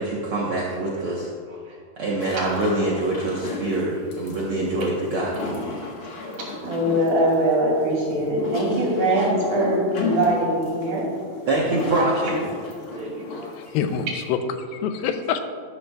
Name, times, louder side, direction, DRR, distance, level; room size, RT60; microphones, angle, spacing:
voice 1, 0.0-1.3 2.0-5.7 11.5-12.4 13.0-13.1, right 2 dB, 75° right, -5 dB, 1.2 m, -25 dB
sound 1, 2.2-14.3, left 3 dB, 55° left, 1.6 m, -34 dB
voice 2, 6.6-11.4 12.9-13.1 13.4-13.5, right 1 dB, 55° right, -4 dB, 4.0 m, -22 dB
voice 3, 13.6-15.4, left 7 dB, 90° left, 8 dB, 2.5 m, -26 dB
12.5 x 12.0 x 2.3 m, 2.1 s
omnidirectional pair, 4.2 m